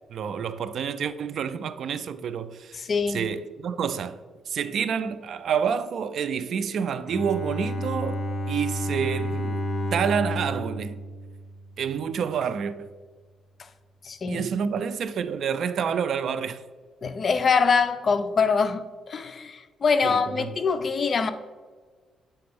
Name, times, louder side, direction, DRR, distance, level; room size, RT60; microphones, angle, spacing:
voice 1, 0.1-2.8 3.1-4.2 4.5-8.2 8.5-9.6 9.9-11.0 11.8-12.9 14.3-16.6 20.0-20.6, right 7 dB, 65° right, 0.3 m, -28 dB
voice 2, 2.8-3.3 14.0-14.5 17.0-21.3, left 5 dB, 45° left, 0.4 m, -24 dB
Bowed string instrument, 7.1-12.0, equal, 25° left, 1.1 m, -31 dB
7.6 x 4.3 x 3.5 m
cardioid pair, 90°, 0 cm